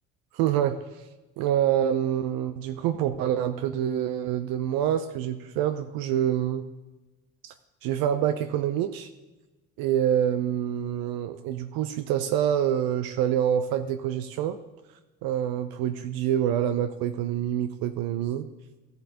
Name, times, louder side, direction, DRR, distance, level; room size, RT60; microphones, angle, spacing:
voice 1, 0.3-0.8 1.4-6.7 7.4-7.5 7.8-9.1 9.8-14.6 15.2-18.5, right 10 dB, 65° right, 9 dB, 0.6 m, -26 dB
14.0 x 7.8 x 2.8 m, 1.1 s
hypercardioid pair, 60°, 39 cm